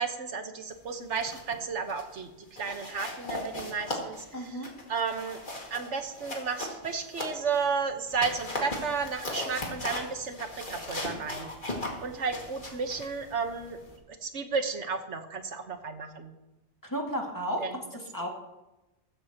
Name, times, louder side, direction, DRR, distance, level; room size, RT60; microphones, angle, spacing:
voice 1, 0.0-2.3 2.6-5.4 5.7-11.5 12.0-13.8 14.2-16.3 17.6-17.7, right 5 dB, 90° right, 6 dB, 1.6 m, -33 dB
sound 1, 0.9-1.6 1.9-2.2 2.6-7.7 8.1-14.0, left 1 dB, 45° left, 2.4 m, -38 dB
voice 2, 4.3-4.7 16.8-18.3, equal, 15° left, 0 dB, 2.2 m, -33 dB
15.0 x 14.5 x 3.0 m, 0.99 s
omnidirectional pair, 1.2 m